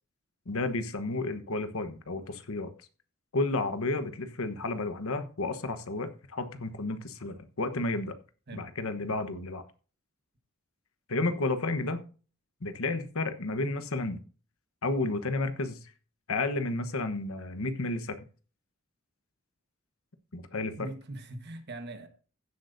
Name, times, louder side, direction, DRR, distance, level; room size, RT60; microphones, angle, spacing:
voice 1, 0.5-2.7 3.3-8.1 8.5-9.6 11.1-12.0 12.6-14.2 14.8-15.8 16.3-18.2 20.3-20.9, left 2 dB, 80° left, 1.2 m, -32 dB
voice 2, 20.8-22.1, right 1 dB, 50° right, 1.4 m, -41 dB
15.5 x 7.9 x 2.7 m
head